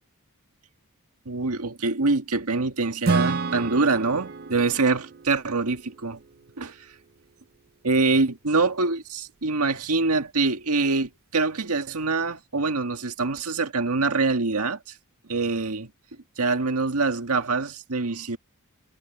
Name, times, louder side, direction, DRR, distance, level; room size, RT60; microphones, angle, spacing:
voice 1, 1.3-6.2 6.6-6.8 7.8-14.8 15.3-15.9 16.4-18.4, right 3 dB, 80° right, 1.8 m, -24 dB
Acoustic guitar / Strum, 3.0-6.6, right 4 dB, 45° right, 0.6 m, -29 dB
head